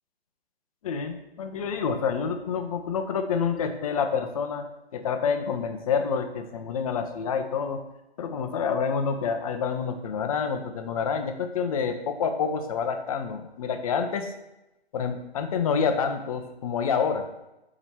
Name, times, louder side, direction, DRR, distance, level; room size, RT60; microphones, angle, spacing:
voice 1, 0.8-4.7 4.9-7.8 8.2-14.3 14.9-17.3, left 6 dB, 35° left, 7 dB, 0.7 m, -28 dB
7.0 x 4.9 x 4.2 m, 0.93 s
figure-of-eight pair, 140°, 32 cm